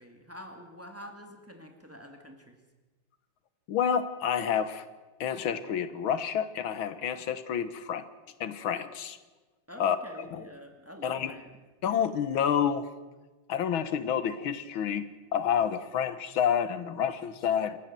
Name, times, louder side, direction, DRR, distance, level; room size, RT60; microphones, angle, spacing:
voice 1, 0.0-2.6 9.7-11.5, equal, 5° right, 4 dB, 2.3 m, -46 dB
voice 2, 3.7-4.9 5.2-8.1 8.4-9.2 9.8-10.0 10.3-10.4 11.0-11.3 11.8-12.9 13.5-15.1 15.3-17.8, left 8 dB, 80° left, 13 dB, 1.9 m, -29 dB
28.0 x 14.0 x 7.5 m, 1.2 s
omnidirectional pair, 2.2 m